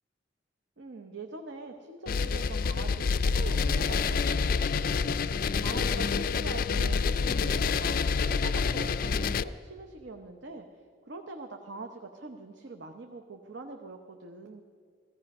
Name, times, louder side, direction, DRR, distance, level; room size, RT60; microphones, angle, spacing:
voice 1, 0.8-10.7 11.1-14.6, right 3 dB, 65° right, 4 dB, 0.8 m, -43 dB
sound 1, 2.1-9.4, left 5 dB, 45° left, 0.4 m, -27 dB
15.5 x 15.0 x 5.4 m, 2.1 s
head